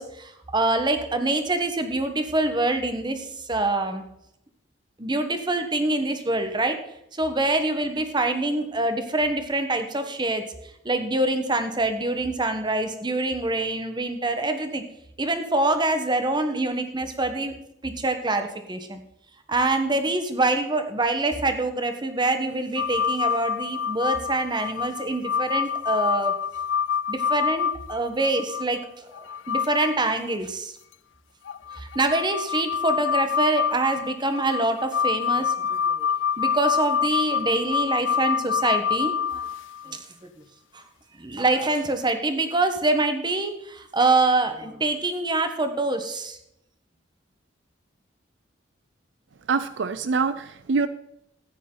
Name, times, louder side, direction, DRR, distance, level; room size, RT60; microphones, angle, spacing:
voice 1, 0.0-4.0 5.0-6.8 7.1-10.4 10.8-14.8 15.2-17.5 17.8-19.0 19.5-26.3 27.1-30.7 31.8-36.1 36.4-39.4 39.8-40.0 40.7-40.8 41.1-46.4, right 2 dB, 25° right, 7 dB, 1.2 m, -25 dB
sound 1, 22.8-28.6 29.1-30.0 30.3-30.4 31.5-39.9 42.0-42.1, left 7 dB, 80° left, 0.4 m, -26 dB
voice 2, 49.5-50.9, right 4 dB, 70° right, 13 dB, 0.5 m, -24 dB
14.5 x 9.3 x 3.9 m, 0.76 s
head